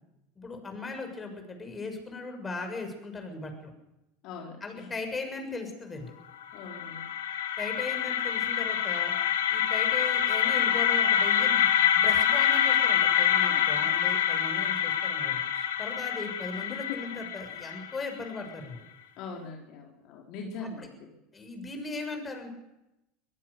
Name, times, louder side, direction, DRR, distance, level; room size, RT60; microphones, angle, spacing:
voice 1, 0.4-3.7 4.6-6.1 7.6-9.1 9.5-18.8 20.6-20.9 21.3-22.5, left 3 dB, 25° left, 5 dB, 6.7 m, -38 dB
voice 2, 4.2-4.9 6.5-7.0 13.5-13.9 16.7-17.0 19.2-21.1, left 4 dB, 55° left, 1 dB, 3.9 m, -41 dB
sound 1, 6.4-18.4, left 9 dB, 80° left, 2.4 m, -26 dB
24.0 x 17.0 x 6.9 m, 0.89 s
hypercardioid pair, 80°, 0 cm